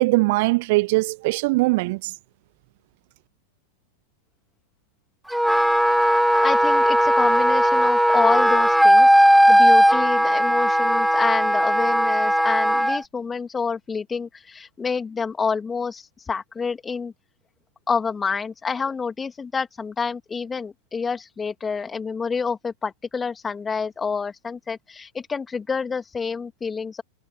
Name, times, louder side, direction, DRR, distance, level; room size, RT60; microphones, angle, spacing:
voice 1, 0.0-2.1, right 23 dB, 50° right, 0.9 m, -21 dB
Wind instrument woodwind instrument, 5.3-13.0, equal, ahead, 1.1 m, -17 dB
voice 2, 6.4-9.2 9.5-17.1 17.9-27.0, left 5 dB, 15° left, 2.7 m, -28 dB
figure-of-eight pair, 90°, 0 cm